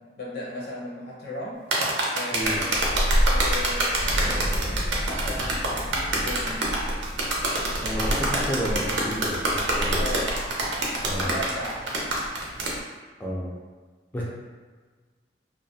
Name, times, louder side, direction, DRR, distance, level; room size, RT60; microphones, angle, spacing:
voice 1, 0.2-1.6 2.1-6.7 10.0-10.3 11.1-11.9 14.2-14.3, left 1 dB, 60° left, -4 dB, 0.6 m, -36 dB
sound 1, 1.7-12.7, right 2 dB, 80° right, 0.5 m, -26 dB
sound 2, 2.4-12.8, equal, 85° left, 0.9 m, -31 dB
Explosion, 4.0-9.4, equal, 35° right, 0.6 m, -33 dB
voice 2, 7.8-10.0 11.0-11.4 13.2-13.5 14.1-14.2, equal, 10° left, -6 dB, 0.3 m, -31 dB
2.3 x 2.0 x 2.6 m, 1.4 s
head